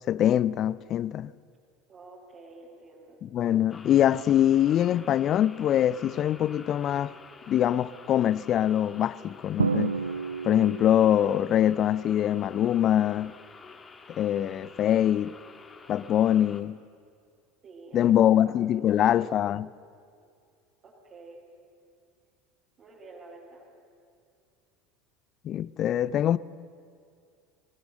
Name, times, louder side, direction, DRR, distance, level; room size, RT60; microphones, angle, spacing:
voice 1, 0.1-1.3 3.2-7.1 7.5-10.0 10.4-13.3 14.2-15.4 15.9-16.8 17.9-19.7 25.4-26.4, left 11 dB, 45° left, 0.4 m, -23 dB
voice 2, 1.9-3.2 17.6-18.5 18.8-19.3 20.8-21.4 22.8-23.6, right 3 dB, 45° right, 5.2 m, -48 dB
sound 1, 3.7-16.6, left 4 dB, 25° left, 1.5 m, -49 dB
Drum, 9.6-11.3, right 5 dB, 85° right, 0.4 m, -29 dB
21.0 x 16.5 x 7.6 m
figure-of-eight pair, 70°, 0 cm